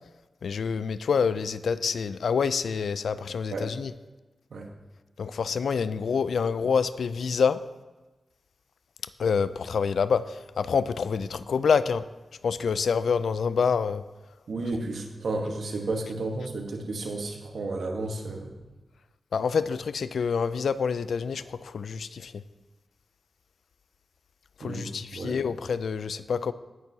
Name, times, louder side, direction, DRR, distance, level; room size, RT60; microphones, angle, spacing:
voice 1, 0.4-3.9 5.2-7.6 9.2-12.1 12.4-14.0 19.3-22.4 24.6-26.5, left 6 dB, 85° left, 15 dB, 0.3 m, -27 dB
voice 2, 14.5-18.6 24.6-25.4, right 2 dB, 75° right, 3 dB, 1.2 m, -32 dB
17.0 x 6.1 x 2.8 m, 1.2 s
cardioid pair, 50°, 0 cm